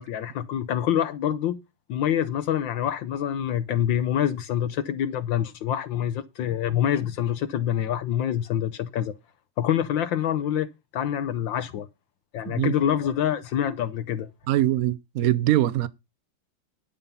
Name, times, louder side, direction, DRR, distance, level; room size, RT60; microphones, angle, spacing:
voice 1, 0.0-1.6 1.9-9.1 9.6-11.9 12.3-14.3, left 10 dB, 70° left, 1.4 m, -26 dB
voice 2, 14.5-15.9, right 14 dB, 85° right, 0.7 m, -22 dB
10.5 x 5.5 x 6.8 m
omnidirectional pair, 2.4 m